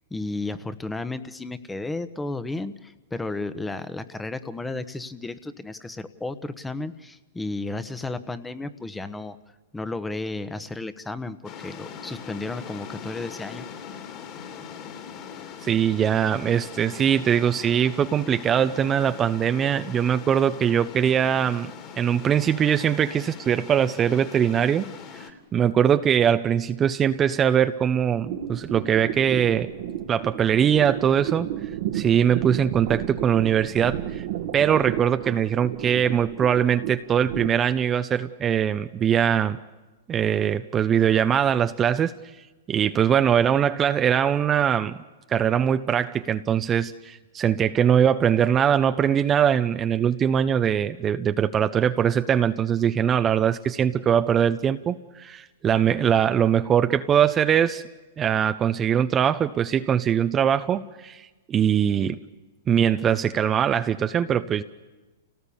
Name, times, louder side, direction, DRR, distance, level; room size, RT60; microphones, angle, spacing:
voice 1, 0.1-9.4 9.7-13.6, left 2 dB, 10° left, 11 dB, 1.1 m, -33 dB
sound 1, 11.4-25.3, left 7 dB, 40° left, 3.0 m, -41 dB
voice 2, 15.6-21.7 22.0-24.9 25.1-29.7 30.1-31.5 31.9-34.3 34.5-39.6 40.1-42.1 42.7-45.0 45.3-57.8 58.2-62.2 62.7-64.6, right 8 dB, 25° right, 9 dB, 0.7 m, -22 dB
sound 2, 28.2-37.5, right 11 dB, 60° right, 1.4 m, -32 dB
29.0 x 18.0 x 7.1 m, 1.2 s
hypercardioid pair, 120°, 0 cm